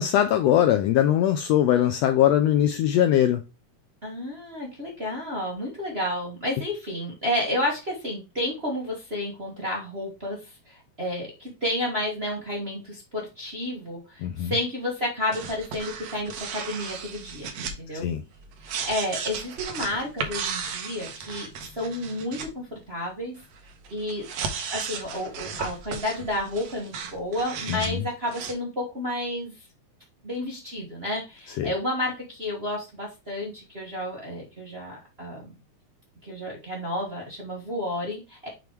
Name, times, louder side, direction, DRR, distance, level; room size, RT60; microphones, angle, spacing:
voice 1, 0.0-3.4 14.2-14.5 17.9-18.2 27.7-28.1 31.6-31.7, left 11 dB, 80° left, 1.5 m, -21 dB
voice 2, 4.0-18.1 18.6-21.5 21.7-23.3 23.9-24.2 24.7-29.5 30.2-35.5 36.2-38.5, left 1 dB, 30° right, 1.1 m, -31 dB
sound 1, 15.3-22.5 23.4-27.9 28.3-28.5, right 6 dB, 65° right, 2.0 m, -35 dB
7.0 x 3.1 x 4.5 m
omnidirectional pair, 3.4 m